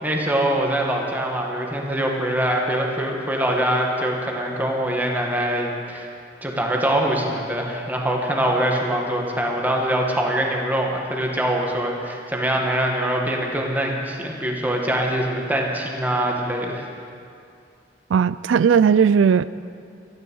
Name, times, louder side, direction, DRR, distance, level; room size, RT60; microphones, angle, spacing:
voice 1, 0.0-6.1 6.4-16.9, right 1 dB, 10° right, 1.9 m, -23 dB
voice 2, 18.1-19.5, right 6 dB, 90° right, 0.4 m, -16 dB
13.5 x 12.5 x 7.8 m
head